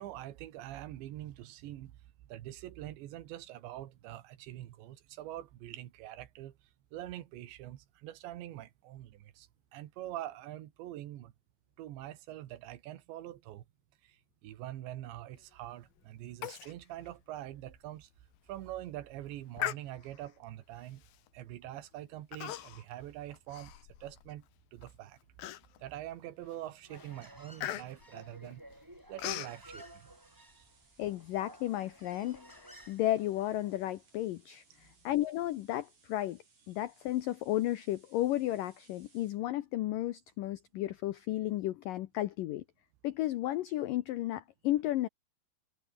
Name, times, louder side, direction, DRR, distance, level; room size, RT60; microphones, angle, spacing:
voice 1, 0.0-6.6 6.9-11.3 11.8-13.7 14.0-18.1 18.5-21.0 21.3-23.7 24.0-24.5 24.7-25.2 25.8-28.6 29.1-30.7, right 13 dB, 80° right, 3.8 m, -44 dB
Human voice, 16.4-16.7 17.1-17.2 17.7-17.8 18.3-18.6 19.6-20.3 21.1-21.3 22.3-22.9 23.3-24.3 24.8-24.9 25.4-26.0 26.4-26.7 26.9-29.6, left 13 dB, 65° left, 2.7 m, -40 dB
Human voice 2, 26.8-33.9, right 1 dB, 5° right, 4.8 m, -55 dB
sound 1, 29.2-39.4, right 4 dB, 40° right, 7.6 m, -67 dB
voice 2, 31.0-36.4 36.7-42.6 43.0-45.1, left 14 dB, 80° left, 1.9 m, -33 dB
omnidirectional pair, 5.1 m